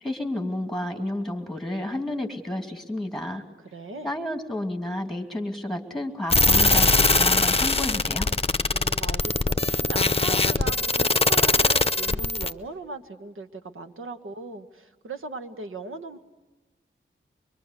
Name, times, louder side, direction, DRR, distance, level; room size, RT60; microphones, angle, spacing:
voice 1, 0.0-3.4 4.0-8.3, left 1 dB, ahead, 5 dB, 2.7 m, -31 dB
voice 2, 3.6-4.1 8.7-16.2, right 3 dB, 80° right, 8 dB, 1.4 m, -38 dB
sound 1, 6.3-12.5, left 2 dB, 30° left, 0.8 m, -21 dB
24.5 x 23.0 x 8.2 m, 1.2 s
wide cardioid pair, 85°, 21 cm